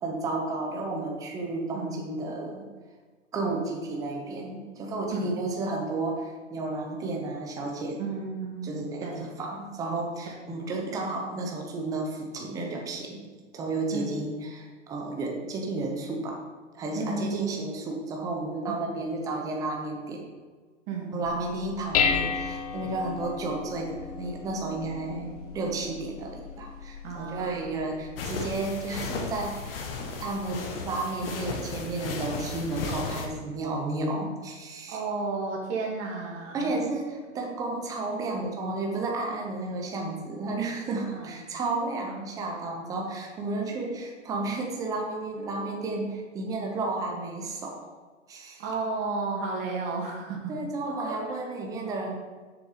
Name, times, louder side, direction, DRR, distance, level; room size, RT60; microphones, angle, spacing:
voice 1, 0.0-2.7 3.3-8.0 8.6-16.4 16.7-20.2 21.1-29.8 30.2-35.0 36.5-47.9 48.3-48.6 50.5-52.1, right 2 dB, 10° right, 1 dB, 0.7 m, -32 dB
voice 2, 8.0-9.3 13.9-14.2 17.0-17.6 20.9-21.2 27.0-27.8 34.9-36.7 41.1-41.3 43.6-43.7 48.6-50.5 50.8-51.2, right 3 dB, 30° right, -1 dB, 2.0 m, -33 dB
Dishes pots and pans, 21.3-30.5, left 6 dB, 30° left, 0.5 m, -34 dB
sound 1, 28.2-33.3, left 4 dB, 45° left, 1.3 m, -35 dB
6.9 x 6.7 x 5.0 m, 1.4 s
hypercardioid pair, 155°, 39 cm